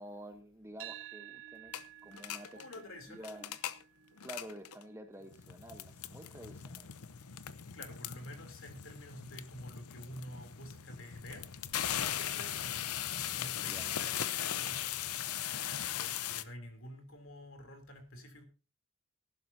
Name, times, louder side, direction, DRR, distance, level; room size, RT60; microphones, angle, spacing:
voice 1, 0.0-1.7 2.0-3.6 4.2-6.9 13.5-13.9, right 1 dB, 10° right, 7 dB, 1.0 m, -50 dB
sound 1, 0.8-9.0, right 12 dB, 65° right, 1.1 m, -54 dB
sound 2, 1.7-1.8 2.1-2.8 3.1-3.8 4.2-4.8 5.3-16.4, left 10 dB, 85° left, 0.8 m, -39 dB
voice 2, 2.5-3.5 7.7-11.5 12.2-12.8 13.3-14.9 16.0-18.4, left 1 dB, 60° left, 5 dB, 3.2 m, -49 dB
18.5 x 12.0 x 2.8 m, 0.33 s
head